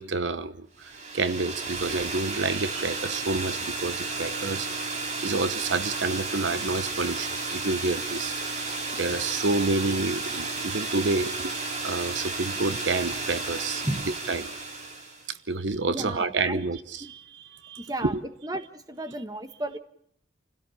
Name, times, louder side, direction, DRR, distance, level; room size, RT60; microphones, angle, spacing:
voice 1, 0.0-13.8 14.3-14.6 15.3-18.2, right 3 dB, 75° right, 13 dB, 1.0 m, -29 dB
sound 1, 0.8-15.3, right 3 dB, 35° right, 2.5 m, -33 dB
voice 2, 15.9-16.6 17.8-18.1 18.4-19.8, right 1 dB, 20° right, 9 dB, 1.4 m, -33 dB
29.0 x 16.5 x 7.2 m, 0.69 s
head